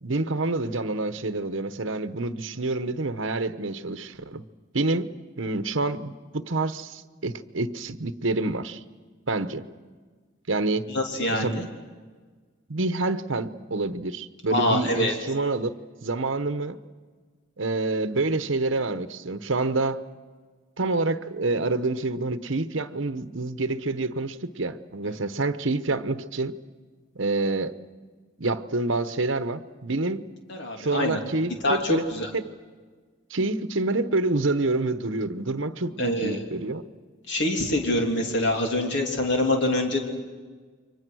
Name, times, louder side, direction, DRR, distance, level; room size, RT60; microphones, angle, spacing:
voice 1, 0.0-4.4 4.7-5.1 5.4-8.8 9.3-9.6 10.5-10.9 11.3-11.6 12.7-15.8 16.0-16.8 17.6-20.0 20.8-26.6 27.1-27.8 28.4-30.3 30.8-32.0 32.3-32.5 33.3-36.8, right 2 dB, 65° right, 11 dB, 1.0 m, -27 dB
voice 2, 10.9-11.6 14.5-15.1 30.5-31.2 31.6-32.3 36.0-36.4 37.3-40.0, left 1 dB, 60° left, 2 dB, 3.2 m, -25 dB
29.5 x 24.0 x 6.3 m, 1.5 s
head